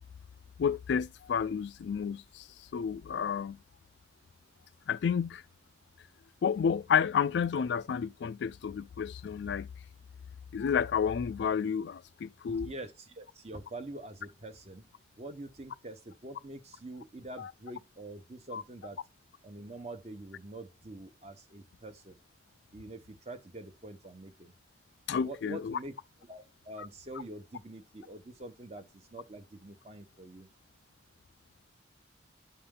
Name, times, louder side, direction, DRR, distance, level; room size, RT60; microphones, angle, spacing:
voice 1, 0.6-2.4 2.7-3.6 4.9-5.4 6.4-9.7 10.5-12.7 17.4-17.5 18.5-18.6 25.1-25.8, left 7 dB, 70° left, 0.3 m, -30 dB
voice 2, 12.6-14.8 15.2-19.0 19.4-22.2 22.7-24.5 25.2-25.9 26.3-30.5, right 2 dB, 35° right, 0.9 m, -45 dB
11.5 x 4.2 x 3.7 m
head